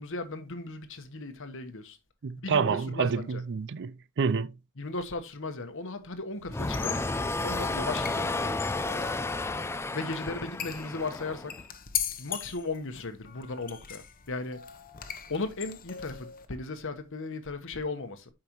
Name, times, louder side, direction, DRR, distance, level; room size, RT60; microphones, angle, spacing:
voice 1, 0.0-2.0 2.4-3.4 4.8-7.1 7.4-8.6 9.9-11.6 12.2-14.6 15.3-18.3, left 3 dB, 60° left, 1.1 m, -36 dB
voice 2, 2.2-4.5, right 5 dB, 55° right, 0.4 m, -28 dB
sound 1, 6.5-11.7, left 2 dB, 10° left, 0.4 m, -32 dB
sound 2, 6.7-16.5, left 9 dB, 40° left, 0.9 m, -40 dB
8.8 x 5.8 x 3.0 m
head